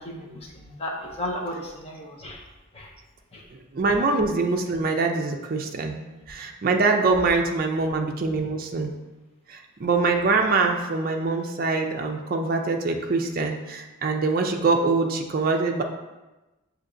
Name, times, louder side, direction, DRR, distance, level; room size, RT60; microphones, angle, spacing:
voice 1, 0.0-2.4 2.7-2.9 3.3-3.4, left 1 dB, 25° left, -1 dB, 0.5 m, -34 dB
voice 2, 3.5-8.9 9.5-15.8, right 3 dB, 40° right, 3 dB, 0.4 m, -24 dB
6.5 x 2.8 x 2.5 m, 1.1 s
head